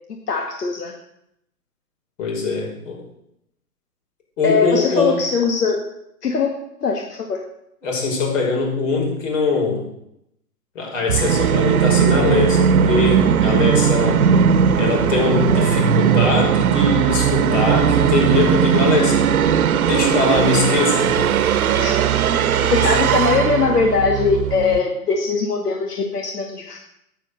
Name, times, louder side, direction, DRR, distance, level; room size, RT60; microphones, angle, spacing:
voice 1, 0.3-0.9 4.4-5.8 6.2-6.5 6.8-7.4 21.8-21.9 22.7-26.8, left 4 dB, 85° left, 2 dB, 2.1 m, -20 dB
voice 2, 2.2-3.1 4.4-5.2 7.8-9.9 10.7-14.2 14.8-21.3 21.6-21.8 22.6-23.1, left 4 dB, 55° left, 0 dB, 5.7 m, -22 dB
Musical instrument, 11.1-24.8, right 8 dB, 65° right, 1.2 m, -18 dB
12.0 x 10.0 x 6.6 m, 0.78 s
hypercardioid pair, 145°, 46 cm